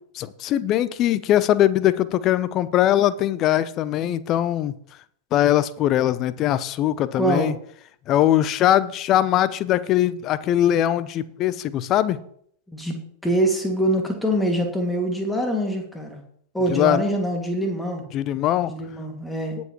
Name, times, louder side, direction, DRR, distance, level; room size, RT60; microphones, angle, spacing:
voice 1, 0.1-4.7 5.3-7.5 8.1-12.2 16.7-17.0 18.1-18.7, left 12 dB, 35° left, 16 dB, 0.6 m, -21 dB
voice 2, 7.2-7.5 12.7-12.9 13.2-16.2 16.5-18.0 18.7-19.6, right 1 dB, 5° left, 2 dB, 2.2 m, -24 dB
19.0 x 7.1 x 3.1 m, 0.66 s
figure-of-eight pair, 90°, 0 cm